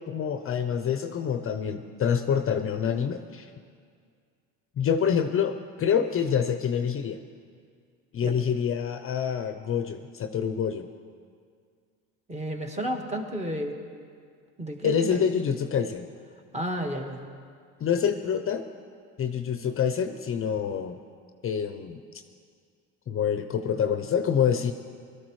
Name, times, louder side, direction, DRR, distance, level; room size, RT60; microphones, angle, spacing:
voice 1, 0.1-3.5 4.8-7.2 8.1-10.9 14.8-16.1 17.8-18.6 19.2-21.0 21.4-22.0 23.1-24.7, left 7 dB, 40° left, 8 dB, 0.7 m, -26 dB
voice 2, 12.3-13.8 14.6-15.2 16.5-17.2, equal, 20° right, 2 dB, 1.7 m, -32 dB
18.5 x 13.0 x 3.2 m, 2.1 s
supercardioid pair, 85°, 35 cm